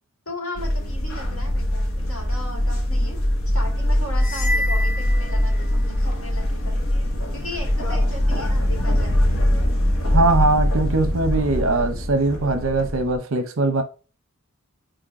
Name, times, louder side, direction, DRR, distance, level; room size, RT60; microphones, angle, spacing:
voice 1, 0.2-3.2 3.5-6.8 7.3-9.4, left 1 dB, 90° left, 3.0 m, -37 dB
sound 1, 0.6-13.1, left 1 dB, 70° left, 1.4 m, -22 dB
sound 2, 4.2-6.0, left 1 dB, 40° left, 0.7 m, -29 dB
voice 2, 10.1-13.8, right 2 dB, 65° right, 0.8 m, -21 dB
5.0 x 4.4 x 4.2 m
head